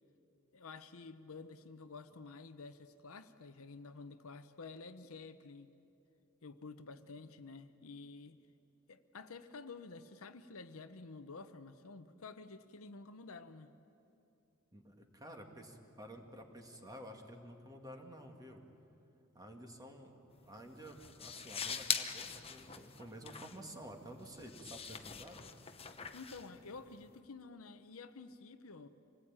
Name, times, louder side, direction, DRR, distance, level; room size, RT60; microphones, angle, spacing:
voice 1, 0.5-5.7 6.4-8.4 8.9-13.7 26.1-28.9, left 4 dB, 70° left, 10 dB, 0.9 m, -50 dB
voice 2, 14.7-18.6 19.3-20.2 20.4-25.5, right 1 dB, 15° right, 3 dB, 2.1 m, -51 dB
sound 1, 20.3-27.2, left 7 dB, 25° left, 1.0 m, -43 dB
26.0 x 19.0 x 8.9 m, 2.8 s
head